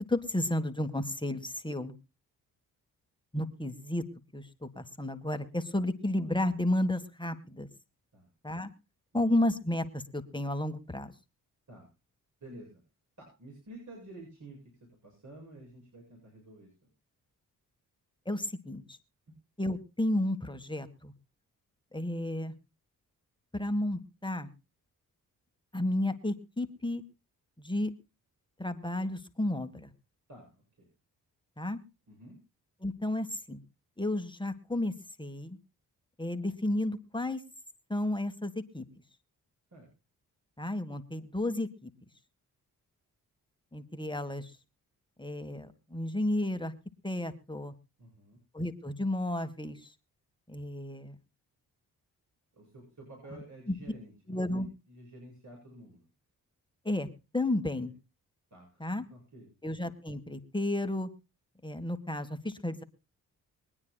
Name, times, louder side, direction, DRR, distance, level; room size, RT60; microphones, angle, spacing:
voice 1, 0.1-1.9 3.3-4.1 4.3-7.7 8.4-8.7 9.1-11.1 18.3-19.0 19.6-21.1 21.9-22.5 23.5-24.5 25.7-27.0 27.6-27.9 28.6-29.9 31.6-31.8 32.8-33.6 34.0-35.6 36.2-37.4 37.9-38.8 40.6-41.9 43.7-44.5 45.2-46.7 47.0-47.7 48.5-49.8 50.5-51.2 53.7-53.8 54.3-54.7 56.9-57.1 57.3-57.9 58.8-59.0 59.6-61.1 61.6-62.8, left 1 dB, 10° left, 8 dB, 1.8 m, -32 dB
voice 2, 12.4-12.8 13.2-16.7 19.3-19.4 30.3-30.9 32.1-32.4 39.7-39.9 48.0-48.4 52.5-56.1 57.8-57.9 58.5-59.5, right 1 dB, 50° right, -2 dB, 8.0 m, -51 dB
23.5 x 9.7 x 2.4 m, 0.29 s
supercardioid pair, 45°, 39 cm